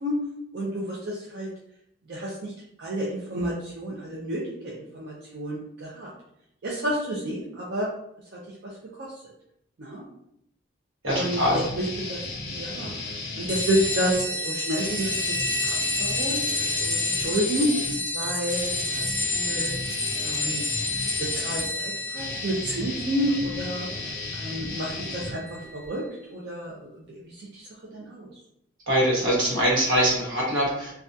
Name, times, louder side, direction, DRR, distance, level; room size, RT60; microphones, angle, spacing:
voice 1, 0.5-1.5 2.1-2.5 2.8-6.1 6.6-7.9 8.3-8.7 9.0-9.1 9.8-10.0 11.1-12.2 12.5-13.0 13.4-17.8 18.1-19.8 20.2-20.7 21.2-23.9 24.3-28.3, right 1 dB, 55° right, -4 dB, 0.4 m, -30 dB
voice 2, 11.0-11.6 28.9-30.9, equal, 75° right, -5 dB, 1.1 m, -23 dB
sound 1, 11.1-14.2 14.7-25.9, left 2 dB, 45° left, 0.5 m, -35 dB
sound 2, 13.5-25.6, left 2 dB, 20° left, 0.9 m, -30 dB
2.6 x 2.2 x 2.2 m, 0.76 s
head